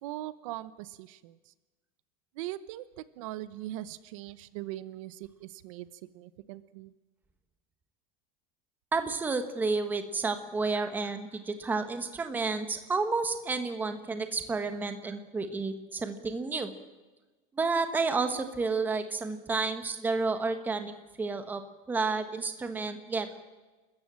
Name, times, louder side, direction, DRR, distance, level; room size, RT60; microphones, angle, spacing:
voice 1, 0.0-1.5 2.4-2.8 3.2-5.9 6.1-6.9, right 15 dB, 65° right, 16 dB, 0.8 m, -40 dB
voice 2, 8.9-16.7 17.5-21.6 21.9-23.4, right 4 dB, 10° right, 8 dB, 1.2 m, -31 dB
29.5 x 14.0 x 7.5 m, 1.2 s
cardioid pair, 180°, 19 cm